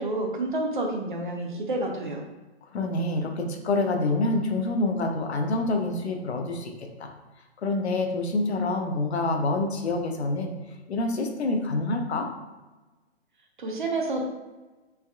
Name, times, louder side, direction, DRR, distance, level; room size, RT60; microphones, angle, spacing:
voice 1, 0.0-2.2 13.6-14.3, right 2 dB, 45° right, 1 dB, 0.6 m, -29 dB
voice 2, 2.7-7.1 7.6-10.5 10.9-12.3, left 2 dB, 70° left, 3 dB, 0.6 m, -27 dB
3.4 x 3.2 x 2.3 m, 1.2 s
hypercardioid pair, 175°, 34 cm